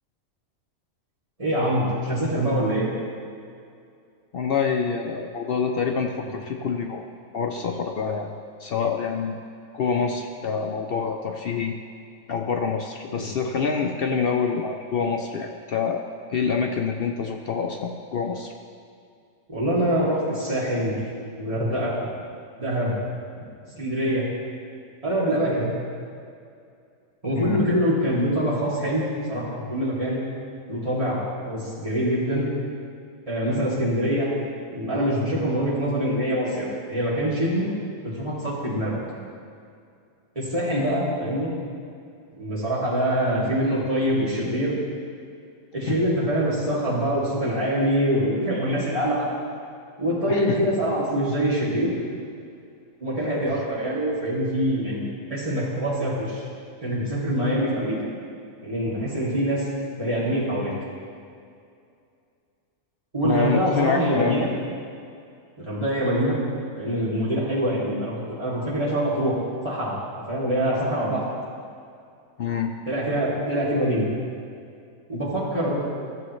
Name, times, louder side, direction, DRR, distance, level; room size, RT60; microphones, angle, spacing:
voice 1, 1.4-2.9 13.2-13.3 19.5-21.1 21.4-22.1 22.6-22.9 23.7-24.2 25.0-25.7 27.2-30.2 30.7-32.5 33.3-34.3 34.7-37.7 38.0-39.0 40.3-41.5 42.4-44.8 45.7-49.3 50.0-51.9 53.0-56.4 56.8-58.0 58.6-59.7 60.0-60.7 63.1-64.5 65.6-66.4 66.8-69.3 69.6-69.9 70.3-71.2 72.9-74.1 75.1-75.8, equal, 25° right, -9 dB, 2.7 m, -24 dB
voice 2, 4.3-7.1 7.3-8.3 8.6-9.4 9.7-11.7 12.3-16.0 16.3-18.5 27.3-27.6 45.9-46.0 50.3-50.6 53.5-53.6 63.2-64.5 72.4-72.7, left 5 dB, 60° left, 2 dB, 0.6 m, -26 dB
14.0 x 7.1 x 3.2 m, 2.4 s
omnidirectional pair, 1.4 m